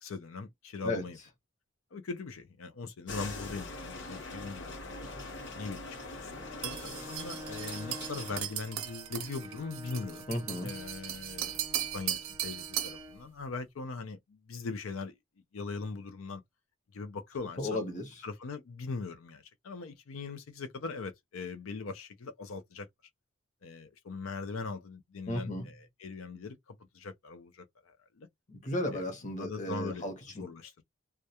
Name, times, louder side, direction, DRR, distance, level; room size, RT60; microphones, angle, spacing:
voice 1, 0.0-1.2 1.9-4.8 5.6-6.3 6.6-10.3 10.6-15.2 15.5-16.4 16.9-17.8 18.2-22.9 23.6-28.3 28.9-29.0 29.4-30.1 30.4-30.8, left 4 dB, 90° left, 0.5 m, -41 dB
sound 1, 3.1-8.4, left 2 dB, 60° left, 0.9 m, -42 dB
Bowed string instrument, 6.2-13.3, left 1 dB, 20° right, 0.4 m, -49 dB
sound 2, 6.6-13.1, right 11 dB, 90° right, 0.5 m, -37 dB
voice 2, 10.3-10.7 17.6-18.1 25.3-25.7 28.5-30.4, left 1 dB, 35° left, 0.8 m, -34 dB
2.2 x 2.2 x 2.8 m
head